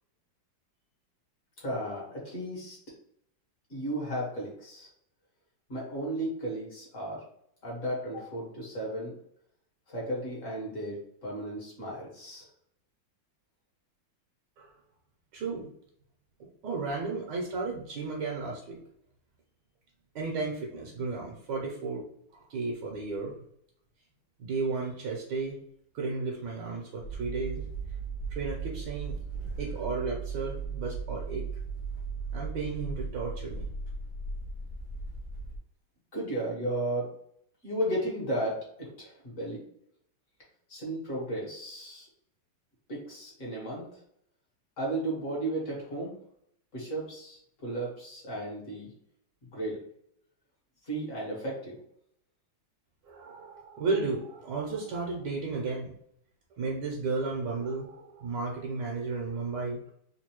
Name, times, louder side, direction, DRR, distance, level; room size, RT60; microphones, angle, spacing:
voice 1, 1.6-2.8 3.7-4.9 5.7-7.2 7.6-9.2 9.9-12.4 36.1-37.1 37.6-39.6 40.7-42.1 42.9-44.0 44.8-46.2 46.7-48.9 49.5-49.8 50.8-51.8, right 1 dB, 45° left, -4 dB, 1.7 m, -34 dB
voice 2, 15.3-15.7 16.6-18.8 20.1-22.0 22.3-23.3 24.4-25.6 25.9-27.6 28.3-29.1 29.6-31.4 32.3-33.6 53.1-55.9 56.6-59.9, right 4 dB, 70° right, -1 dB, 1.3 m, -33 dB
sound 1, 27.0-35.6, right 5 dB, 80° left, 1.8 m, -37 dB
3.8 x 2.7 x 2.9 m, 0.70 s
omnidirectional pair, 2.1 m